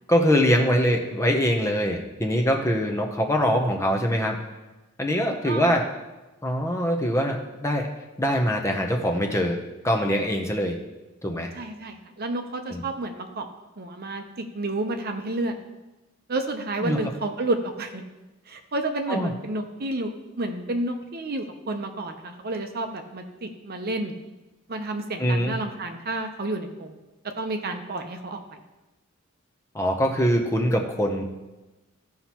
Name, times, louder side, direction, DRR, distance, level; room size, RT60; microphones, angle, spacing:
voice 1, 0.1-4.4 5.0-5.9 6.4-7.9 8.2-10.8 11.2-11.5 12.7-12.8 16.8-17.1 19.1-19.3 25.2-25.6 29.7-31.2, equal, 15° left, 2 dB, 0.7 m, -23 dB
voice 2, 11.5-13.5 13.8-15.5 16.3-18.1 18.5-20.1 20.4-24.2 24.7-27.0 27.4-28.4, right 2 dB, 45° right, 5 dB, 0.8 m, -30 dB
15.0 x 5.6 x 3.0 m, 1.1 s
head